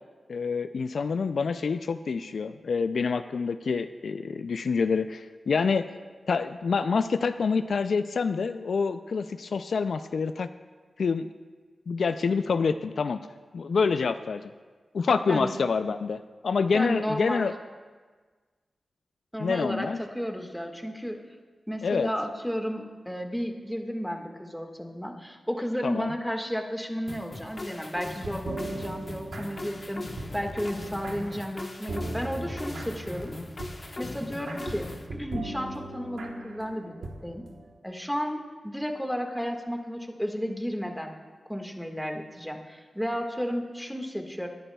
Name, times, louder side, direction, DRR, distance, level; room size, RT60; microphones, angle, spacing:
voice 1, 0.3-5.9 6.3-10.5 11.0-11.3 11.9-13.2 13.5-14.5 14.9-17.5 19.4-20.0 21.8-22.1 25.8-26.1, left 5 dB, 75° left, 11 dB, 0.3 m, -27 dB
voice 2, 16.7-17.5 19.3-21.2 21.7-33.3 34.0-37.4 37.8-41.1 41.5-44.5, equal, ahead, 3 dB, 1.7 m, -33 dB
sound 1, 27.1-35.1, left 2 dB, 45° left, 1.1 m, -39 dB
sound 2, 28.2-37.8, right 2 dB, 90° right, 1.2 m, -40 dB
21.5 x 11.0 x 2.3 m, 1.4 s
cardioid pair, 45°, 0 cm